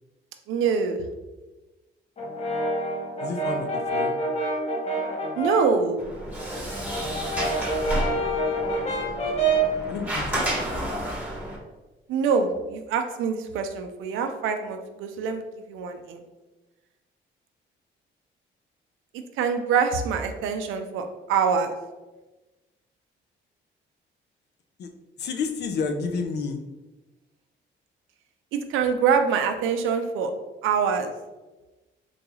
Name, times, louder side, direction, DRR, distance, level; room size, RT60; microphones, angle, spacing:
voice 1, 0.5-1.0 5.4-6.0 12.1-16.2 19.4-21.7 28.5-30.3 30.6-31.1, right 6 dB, 85° right, 6 dB, 0.4 m, -25 dB
Brass instrument, 2.2-5.8 6.2-9.8, right 2 dB, 35° left, 0.8 m, -27 dB
voice 2, 3.2-4.2 9.9-10.5 24.8-24.9 25.2-26.6, left 4 dB, 60° left, 5 dB, 0.4 m, -30 dB
Sliding door, 6.0-11.6, right 1 dB, 10° right, 1.1 m, -31 dB
3.8 x 2.3 x 3.0 m, 1.1 s
cardioid pair, 90°, 20 cm